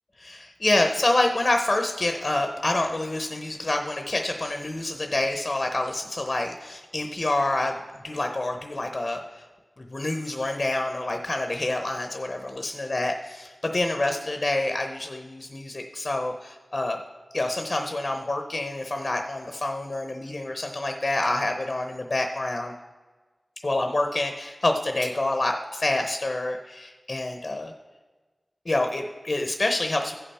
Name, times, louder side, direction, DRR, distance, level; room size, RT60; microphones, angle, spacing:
voice 1, 0.2-7.8 8.0-9.4 9.8-17.0 17.3-22.7 23.6-27.7 28.7-30.2, left 2 dB, 45° left, 4 dB, 0.8 m, -27 dB
15.0 x 5.6 x 4.3 m, 1.3 s
wide cardioid pair, 55°, 0 cm